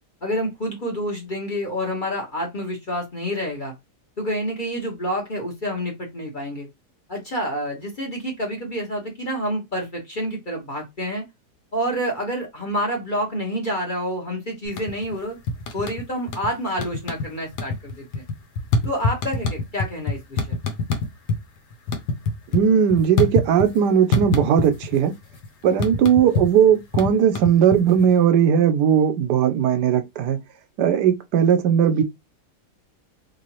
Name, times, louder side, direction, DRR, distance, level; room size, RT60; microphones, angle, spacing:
voice 1, 0.2-3.7 4.2-6.7 7.1-11.2 11.7-15.4 15.7-18.2 18.8-20.6, equal, 35° left, 1.0 m, -28 dB
sound 1, 14.6-15.1 15.5-16.5 16.8-17.3 17.5-21.4 21.7-23.8 24.1-25.0 25.2-28.1, left 3 dB, 80° left, 1.4 m, -25 dB
voice 2, 22.5-25.1 25.6-30.4 30.8-32.0, right 8 dB, 85° right, 1.2 m, -18 dB
3.5 x 3.0 x 3.0 m
omnidirectional pair, 1.8 m